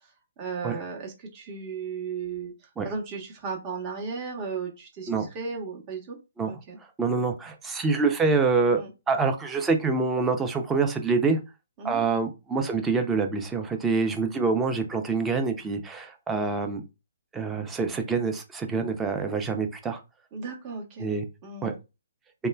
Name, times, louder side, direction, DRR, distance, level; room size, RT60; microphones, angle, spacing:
voice 1, 0.4-2.5 2.8-6.2 6.4-6.8 8.8-8.9 11.8-12.0 20.3-21.1 21.4-21.8, right 5 dB, 30° right, 0 dB, 1.0 m, -35 dB
voice 2, 7.0-11.4 11.8-16.8 17.3-20.0 21.0-21.2 21.6-21.7, right 4 dB, 10° right, 5 dB, 0.5 m, -26 dB
3.0 x 2.2 x 2.2 m, 0.27 s
figure-of-eight pair, 135°, 0 cm